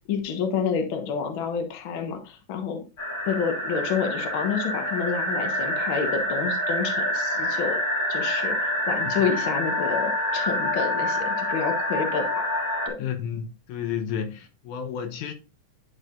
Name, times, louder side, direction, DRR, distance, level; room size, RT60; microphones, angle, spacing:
voice 1, 0.0-2.8 3.2-7.8 8.1-12.5 12.8-13.0, left 6 dB, 55° left, 1.6 m, -29 dB
sound 1, 3.0-12.9, left 1 dB, 40° left, 2.4 m, -27 dB
voice 2, 13.0-15.3, left 8 dB, 80° left, 2.4 m, -31 dB
10.5 x 4.8 x 2.5 m
omnidirectional pair, 3.6 m